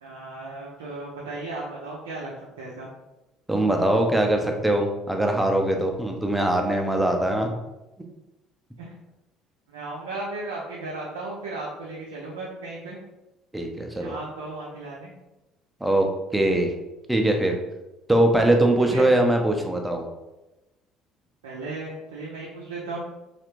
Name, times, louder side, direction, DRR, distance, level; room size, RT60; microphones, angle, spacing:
voice 1, 0.0-2.3 2.6-2.9 8.8-8.9 9.7-13.0 14.0-15.1 18.8-19.1 21.4-23.0, right 2 dB, 80° right, -4 dB, 0.5 m, -35 dB
voice 2, 3.5-7.5 13.5-14.2 15.8-16.1 16.3-16.7 17.1-17.5 18.1-20.0, right 1 dB, 10° right, 3 dB, 0.6 m, -22 dB
3.2 x 2.5 x 3.0 m, 1.0 s
hypercardioid pair, 55°, 0 cm